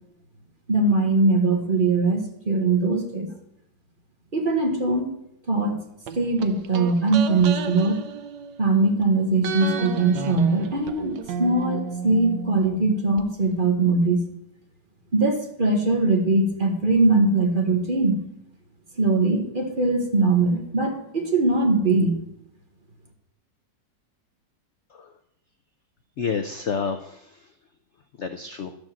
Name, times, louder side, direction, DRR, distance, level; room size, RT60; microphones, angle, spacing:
voice 1, 0.7-3.3 4.3-5.2 5.5-5.8 6.1-8.0 8.6-14.3 15.1-18.2 19.0-22.2, right 3 dB, 30° right, 3 dB, 1.4 m, -21 dB
sound 1, 6.1-9.0 9.4-13.2 13.5-13.6, right 6 dB, 70° right, 1.3 m, -33 dB
voice 2, 26.2-27.5 28.2-28.7, left 5 dB, 70° left, 8 dB, 0.7 m, -30 dB
12.5 x 5.0 x 7.4 m, 0.78 s
omnidirectional pair, 1.9 m